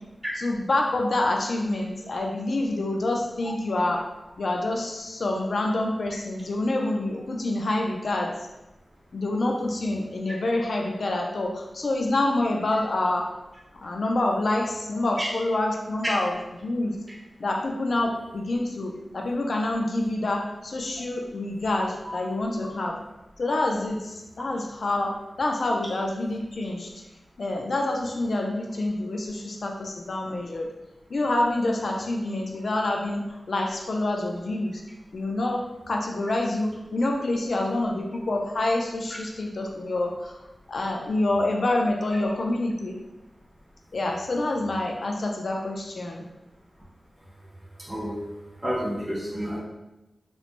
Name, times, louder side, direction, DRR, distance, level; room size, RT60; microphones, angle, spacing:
voice 1, 0.4-4.1 4.4-8.5 9.1-13.3 13.7-17.0 17.4-23.0 23.4-26.9 27.4-30.7 31.1-34.8 35.1-40.4 40.7-43.0 43.9-46.2, left 2 dB, 65° left, 1 dB, 0.3 m, -27 dB
voice 2, 47.8-48.2 48.6-49.6, equal, 15° right, -6 dB, 1.0 m, -29 dB
3.1 x 3.0 x 2.4 m, 0.98 s
wide cardioid pair, 120°, 0 cm